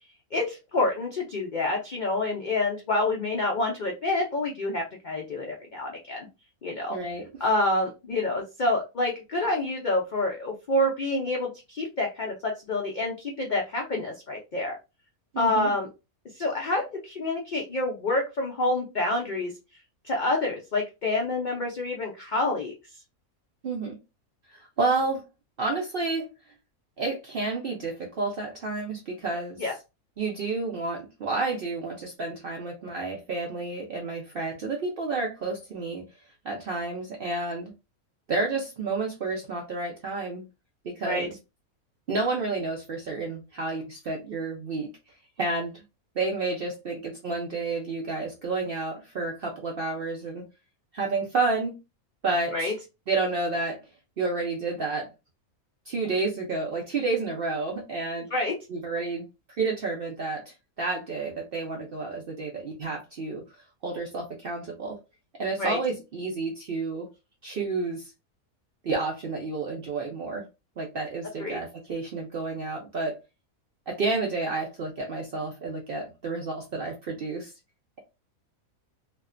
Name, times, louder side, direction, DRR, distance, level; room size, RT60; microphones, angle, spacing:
voice 1, 0.3-6.3 6.6-7.0 7.4-14.8 15.4-15.9 16.4-19.5 20.0-22.7 29.6-29.7 41.0-41.3 52.5-52.7 58.3-58.5 65.6-65.8 71.4-71.6, left 2 dB, 90° left, 0 dB, 0.4 m, -27 dB
voice 2, 6.9-7.3 15.3-15.7 23.6-24.0 24.5-25.2 25.6-26.3 27.0-29.7 30.2-36.0 36.4-37.7 38.3-40.4 40.8-41.3 42.1-44.9 45.4-45.8 46.2-50.4 50.9-51.8 52.2-52.7 53.1-53.8 54.2-55.1 55.9-58.3 58.7-59.3 59.6-63.4 63.8-65.0 65.4-67.1 67.4-68.1 68.8-70.5 70.8-73.2 73.9-77.5, right 3 dB, 70° right, 0 dB, 0.5 m, -30 dB
2.4 x 2.1 x 2.4 m, 0.27 s
omnidirectional pair, 1.5 m